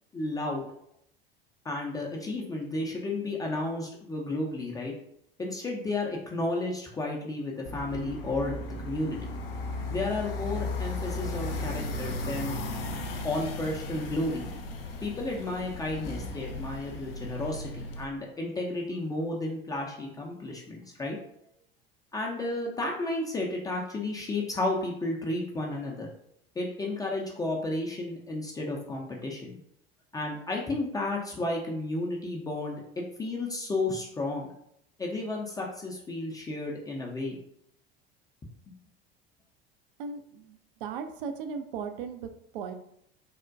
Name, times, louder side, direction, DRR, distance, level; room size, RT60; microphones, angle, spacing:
voice 1, 0.1-0.7 1.6-4.9 5.4-9.2 9.9-12.6 13.2-14.5 15.0-21.2 22.1-26.1 26.6-29.6 30.1-34.5 35.0-37.4, left 2 dB, 10° left, -2 dB, 0.4 m, -32 dB
sound 1, 7.7-18.0, left 2 dB, 70° left, 0.5 m, -36 dB
voice 2, 40.0-42.7, right 6 dB, 60° right, 7 dB, 0.5 m, -37 dB
3.4 x 2.1 x 2.5 m, 0.74 s
figure-of-eight pair, 70°, 30 cm